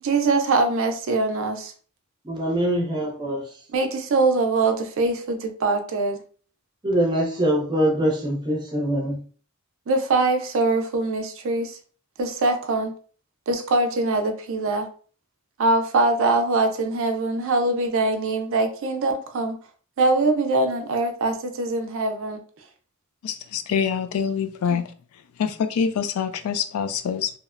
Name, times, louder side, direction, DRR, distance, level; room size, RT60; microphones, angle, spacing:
voice 1, 0.0-1.7 3.7-6.2 9.9-11.8 12.2-12.9 13.5-14.9 15.6-19.6 20.0-22.4 24.7-24.8, right 3 dB, 65° right, 0.4 m, -23 dB
voice 2, 2.2-3.4 6.8-9.2, right 1 dB, 20° right, 0.7 m, -23 dB
voice 3, 23.2-24.8 25.4-27.3, left 7 dB, 85° left, 0.3 m, -25 dB
2.8 x 2.0 x 2.4 m
head